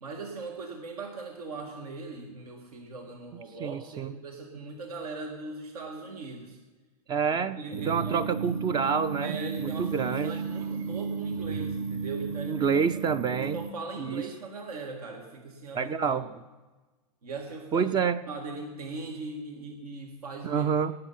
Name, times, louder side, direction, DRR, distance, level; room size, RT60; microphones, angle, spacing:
voice 1, 0.0-6.6 7.3-8.2 9.2-12.8 13.3-16.2 17.2-18.0 18.3-20.7, right 3 dB, 80° right, 2 dB, 1.8 m, -39 dB
voice 2, 3.6-4.1 7.1-7.6 7.9-10.4 12.5-13.6 14.0-14.3 15.7-16.3 17.7-18.2 20.4-20.9, right 6 dB, 20° right, 13 dB, 0.4 m, -28 dB
sound 1, 7.7-13.7, right 5 dB, 65° right, 0.9 m, -34 dB
18.0 x 7.4 x 5.6 m, 1.3 s
hypercardioid pair, 115°, 19 cm